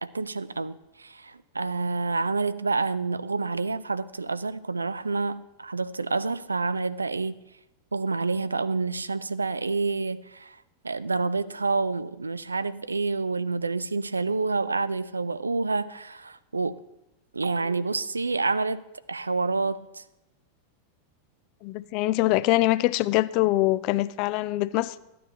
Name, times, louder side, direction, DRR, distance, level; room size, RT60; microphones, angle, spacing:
voice 1, 0.0-7.4 7.9-10.6 10.8-16.8 17.3-18.8 19.1-20.0, right 3 dB, 80° right, 16 dB, 0.3 m, -28 dB
voice 2, 21.6-25.0, left 17 dB, 45° left, 16 dB, 0.4 m, -24 dB
13.0 x 9.3 x 2.9 m, 0.95 s
figure-of-eight pair, 90°, 0 cm